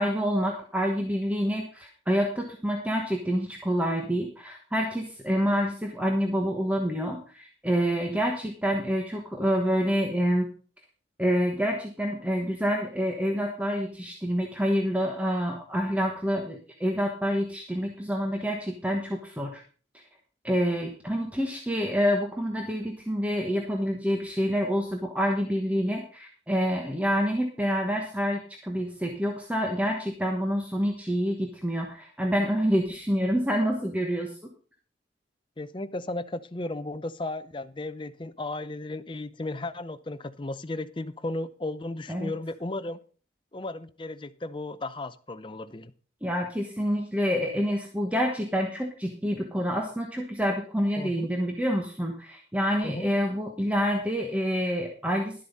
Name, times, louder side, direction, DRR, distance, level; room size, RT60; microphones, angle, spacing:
voice 1, 0.0-10.5 11.2-19.6 20.4-34.3 42.1-42.3 46.2-55.4, equal, 5° right, 1 dB, 1.2 m, -27 dB
voice 2, 35.6-43.0 43.5-45.9 51.0-51.3 52.8-53.1, left 2 dB, 25° left, 12 dB, 0.6 m, -35 dB
12.0 x 7.7 x 5.4 m, 0.40 s
head